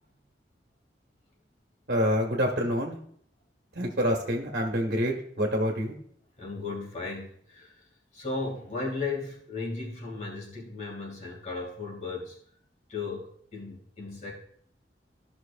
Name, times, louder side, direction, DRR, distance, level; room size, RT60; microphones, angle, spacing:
voice 1, 1.9-3.0 3.7-6.0, equal, 65° right, 1 dB, 1.4 m, -27 dB
voice 2, 6.4-7.7 8.1-12.4 12.9-14.3, left 3 dB, 40° left, -1 dB, 2.5 m, -35 dB
14.5 x 6.1 x 2.5 m, 0.62 s
head